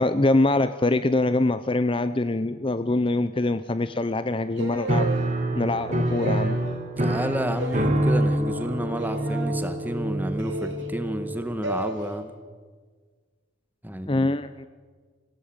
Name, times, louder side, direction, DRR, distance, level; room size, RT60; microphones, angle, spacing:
voice 1, 0.0-5.1 5.5-6.6 14.1-14.7, left 2 dB, 25° left, 12 dB, 0.6 m, -24 dB
sound 1, 4.6-5.1 6.0-6.7 7.6-8.0 9.0-9.5 10.4-10.9 11.6-12.0, right 2 dB, 80° right, 4.5 m, -32 dB
Piano, 4.9-11.7, right 1 dB, 40° right, 2.7 m, -26 dB
voice 2, 7.0-12.4 13.8-14.3, equal, 10° right, 8 dB, 1.7 m, -30 dB
27.0 x 16.5 x 8.9 m, 1.5 s
head